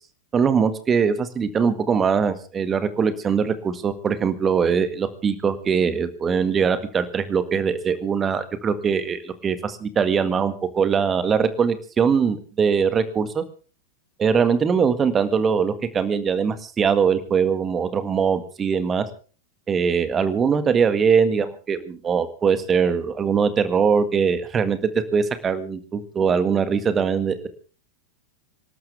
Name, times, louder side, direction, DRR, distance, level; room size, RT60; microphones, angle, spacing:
voice 1, 0.3-13.4 14.2-19.0 19.7-24.8 25.1-27.5, right 6 dB, 20° right, 11 dB, 1.8 m, -22 dB
26.5 x 12.5 x 3.5 m, 0.37 s
figure-of-eight pair, 90°, 0 cm